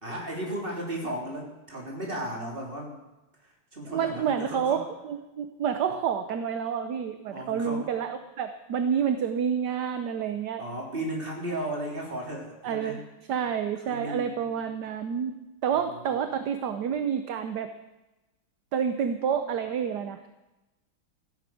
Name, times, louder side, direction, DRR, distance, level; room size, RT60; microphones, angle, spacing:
voice 1, 0.0-3.0 3.4-4.8 7.3-7.9 10.6-13.0 13.9-14.4 15.7-16.4, right 1 dB, 25° right, -1 dB, 3.7 m, -35 dB
voice 2, 3.9-10.6 12.6-13.0 13.3-15.3 15.6-17.7 18.7-20.3, right 7 dB, 60° right, 8 dB, 1.2 m, -29 dB
15.0 x 11.0 x 7.7 m, 1.0 s
omnidirectional pair, 2.4 m